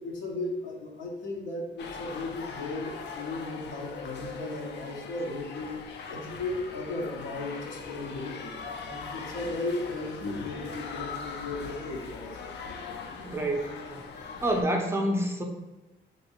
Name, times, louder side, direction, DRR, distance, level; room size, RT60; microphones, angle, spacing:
voice 1, 0.0-5.8 6.1-8.5 8.8-12.5, left 2 dB, 85° left, -1 dB, 0.8 m, -36 dB
sound 1, 1.8-14.6, left 5 dB, 60° left, 0.4 m, -40 dB
voice 2, 13.2-14.0 14.4-15.4, right 1 dB, 15° right, 2 dB, 0.4 m, -28 dB
2.9 x 2.6 x 2.9 m, 1.1 s
cardioid pair, 90°, 20 cm